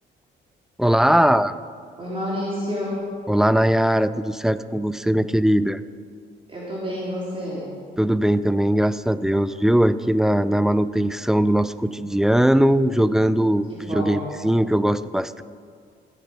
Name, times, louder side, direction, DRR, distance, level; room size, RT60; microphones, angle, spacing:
voice 1, 0.8-1.6 3.3-5.8 8.0-15.4, equal, ahead, 14 dB, 0.4 m, -20 dB
voice 2, 2.0-3.0 6.5-7.7 13.7-14.3, equal, 25° right, -7 dB, 3.8 m, -29 dB
16.0 x 8.3 x 5.4 m, 2.1 s
cardioid pair, 90°, 20 cm